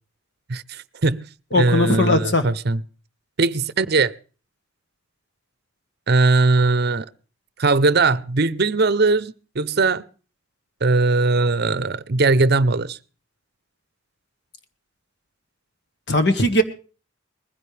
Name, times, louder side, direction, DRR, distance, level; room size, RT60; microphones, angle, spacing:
voice 1, 0.5-1.3 1.6-2.8 3.4-4.1 6.1-7.1 7.6-10.0 10.8-13.0, right 3 dB, 50° right, 0.7 m, -19 dB
voice 2, 1.5-2.5 16.1-16.6, left 1 dB, 55° left, 1.5 m, -18 dB
21.0 x 15.5 x 3.4 m
head